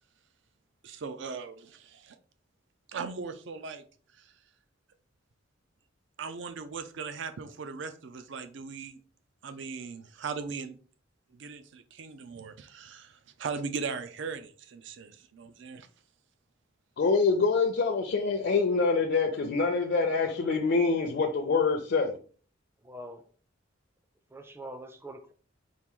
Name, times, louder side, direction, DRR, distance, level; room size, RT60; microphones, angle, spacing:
voice 1, 0.8-2.2 2.9-3.8 4.1-4.3 6.2-9.0 9.4-10.8 11.3-15.9, right 5 dB, 70° right, 0.5 m, -39 dB
voice 2, 17.0-22.2, left 4 dB, 60° left, 0.5 m, -25 dB
voice 3, 22.8-23.2 24.3-25.3, right 1 dB, 15° right, 0.4 m, -44 dB
4.5 x 2.5 x 3.6 m
head